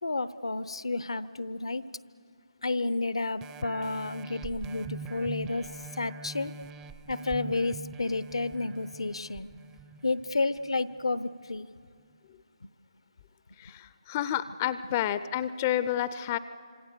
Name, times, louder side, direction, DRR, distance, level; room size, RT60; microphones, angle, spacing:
voice 1, 0.0-1.8 2.6-5.7 6.0-6.5 7.1-9.5 10.0-11.7 12.6-12.7, left 3 dB, 70° left, 16 dB, 0.8 m, -31 dB
sound 1, 3.4-10.6 11.1-11.2, right 5 dB, 15° right, 0.6 m, -44 dB
voice 2, 13.6-16.4, left 11 dB, 25° left, 14 dB, 0.5 m, -30 dB
27.0 x 26.5 x 6.8 m, 2.2 s
figure-of-eight pair, 145°, 3 cm